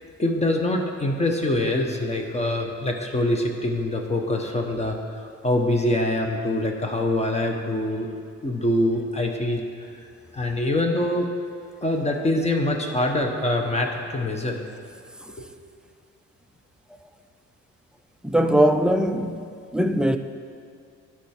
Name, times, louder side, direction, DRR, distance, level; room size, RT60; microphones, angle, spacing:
voice 1, 0.2-8.1 8.4-9.7 10.3-11.3 11.8-14.6, left 1 dB, 20° left, 1.0 m, -24 dB
voice 2, 18.2-19.4 19.7-20.2, right 1 dB, 5° right, 0.4 m, -20 dB
11.5 x 4.9 x 4.4 m
cardioid pair, 90°, 30 cm